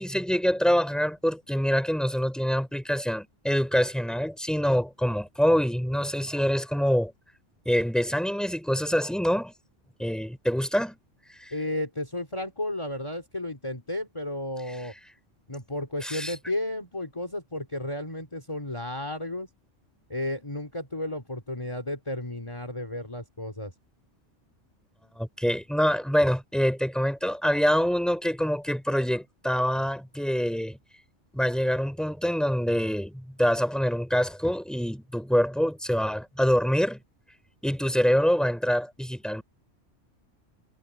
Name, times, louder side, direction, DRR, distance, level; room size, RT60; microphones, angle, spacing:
voice 1, 0.0-7.1 7.6-9.5 10.0-11.0 11.4-11.5 16.0-16.3 25.2-30.8 31.3-37.0 37.6-39.4, equal, ahead, 5.1 m, -25 dB
voice 2, 11.5-14.9 15.5-19.5 20.1-23.7, left 1 dB, 25° left, 2.9 m, -33 dB
omnidirectional pair, 1.2 m